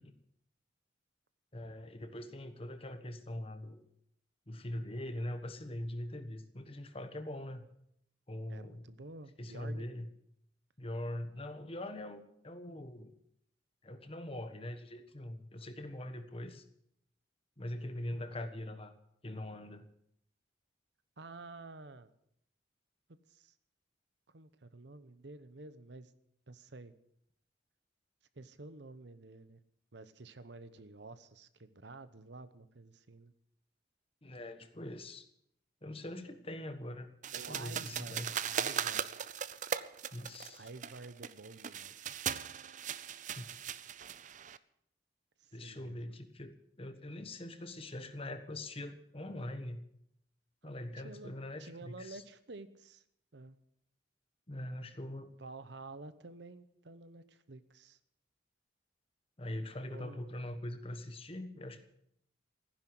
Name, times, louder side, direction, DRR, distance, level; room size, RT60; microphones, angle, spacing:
voice 1, 1.5-3.8 4.5-7.6 8.3-8.8 9.4-10.1 10.8-13.1 13.8-16.6 17.6-18.9 19.2-19.9 34.2-35.2 35.8-37.1 37.5-38.6 40.1-40.7 43.3-43.5 45.5-49.8 50.6-52.2 54.5-55.3 59.4-61.8, left 1 dB, 30° left, 9 dB, 1.4 m, -42 dB
voice 2, 8.5-9.9 21.2-22.1 23.3-23.5 24.3-26.1 26.5-26.9 28.3-29.6 29.9-33.3 37.3-39.1 40.5-42.4 45.4-46.2 51.0-51.3 51.6-53.0 53.3-53.6 55.4-58.0 59.8-60.2, right 3 dB, 65° right, 13 dB, 0.9 m, -50 dB
sound 1, 37.2-44.6, right 8 dB, 40° right, 0.6 m, -39 dB
15.0 x 10.5 x 7.8 m, 0.73 s
head